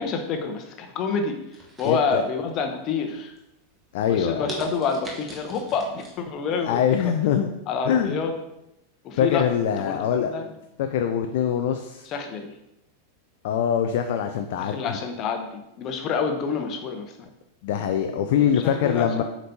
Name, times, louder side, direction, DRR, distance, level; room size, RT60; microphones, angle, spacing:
voice 1, 0.0-1.4 1.8-3.3 4.1-6.8 7.7-8.3 9.0-9.4 9.8-10.5 12.1-12.5 14.6-17.3 18.4-19.2, left 5 dB, 35° left, 5 dB, 0.9 m, -28 dB
sound 1, 1.5-2.5 3.0-3.4 3.9-4.0 4.5-6.2 6.5-6.6, right 1 dB, 15° right, 1.2 m, -40 dB
voice 2, 1.8-2.2 3.9-4.6 6.6-7.5 7.8-8.2 9.2-10.4 10.8-12.1 13.4-15.0 17.6-19.2, left 8 dB, 50° left, 6 dB, 0.4 m, -23 dB
7.5 x 5.2 x 2.8 m, 0.85 s
figure-of-eight pair, 90°, 0 cm